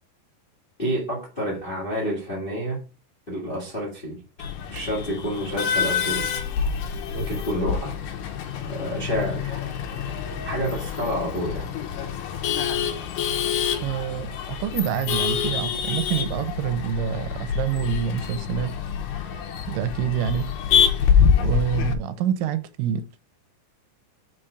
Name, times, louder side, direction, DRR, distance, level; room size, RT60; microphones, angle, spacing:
voice 1, 0.8-2.8 3.3-4.2 4.7-6.3 7.0-8.0 8.6-9.6 10.4-11.7, equal, 25° left, 1.1 m, -29 dB
Male speech man speaking / Laughter / Chatter, 4.4-21.9, left 7 dB, 75° left, 2.3 m, -26 dB
voice 2, 13.8-18.7 19.7-20.5 21.4-23.0, right 9 dB, 90° right, 2.3 m, -27 dB
5.2 x 4.4 x 4.9 m
omnidirectional pair, 3.9 m